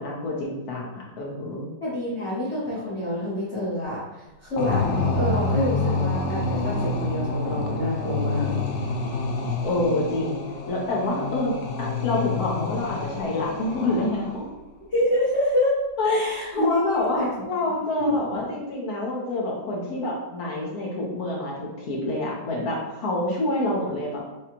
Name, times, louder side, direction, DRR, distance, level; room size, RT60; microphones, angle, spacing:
voice 1, 0.0-1.7 9.6-14.5 16.0-16.2 16.5-24.2, left 2 dB, 60° left, -3 dB, 1.4 m, -27 dB
voice 2, 1.8-4.8 5.1-8.5 14.9-15.8 16.0-17.3 18.0-18.5, left 1 dB, 45° left, -9 dB, 1.2 m, -27 dB
sound 1, 4.6-14.4, left 3 dB, 90° left, 0.6 m, -28 dB
6.5 x 2.4 x 2.9 m, 1.0 s
omnidirectional pair, 2.0 m